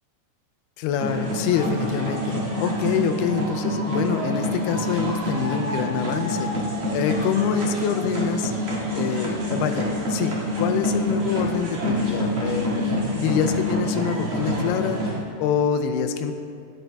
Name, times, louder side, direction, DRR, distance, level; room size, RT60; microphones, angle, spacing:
voice 1, 0.8-6.5 6.9-8.5 8.9-12.9 13.2-15.0 15.4-16.3, left 8 dB, 85° left, 7 dB, 2.5 m, -26 dB
sound 1, 1.0-15.2, equal, 45° right, 1.6 m, -26 dB
11.0 x 8.4 x 3.4 m, 2.5 s
omnidirectional pair, 4.5 m